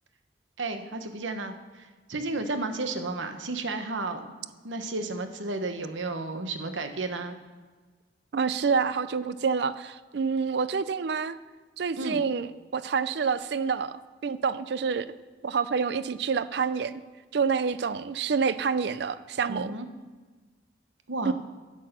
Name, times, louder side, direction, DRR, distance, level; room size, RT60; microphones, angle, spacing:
voice 1, 0.6-4.3 4.6-7.4 11.9-12.2 19.5-19.9 21.1-21.3, right 2 dB, 80° right, 7 dB, 1.0 m, -33 dB
voice 2, 8.3-11.4 11.8-13.9 14.2-15.1 15.4-16.9 17.3-19.7 21.2-21.3, right 5 dB, 60° right, 15 dB, 0.4 m, -27 dB
10.5 x 6.2 x 6.7 m, 1.4 s
head